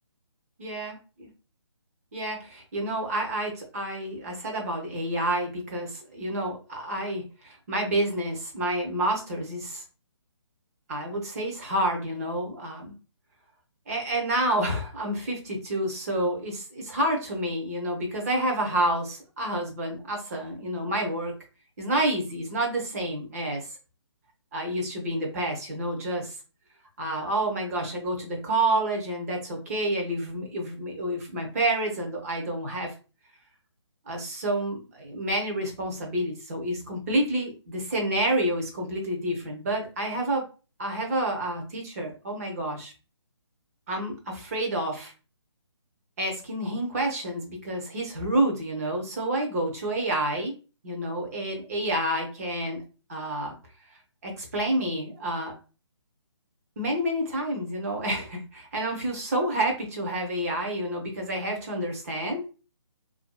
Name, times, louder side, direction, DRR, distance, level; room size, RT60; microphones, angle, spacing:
voice 1, 0.6-0.9 2.1-9.8 10.9-12.9 13.9-21.3 21.8-23.7 24.5-26.4 27.0-32.9 34.1-40.4 40.8-42.9 43.9-45.1 46.2-50.5 50.8-52.8 53.1-53.6 54.2-55.5 56.8-62.5, right 1 dB, 30° right, 1 dB, 0.7 m, -29 dB
2.6 x 2.2 x 2.2 m, 0.33 s
hypercardioid pair, 165°, 15 cm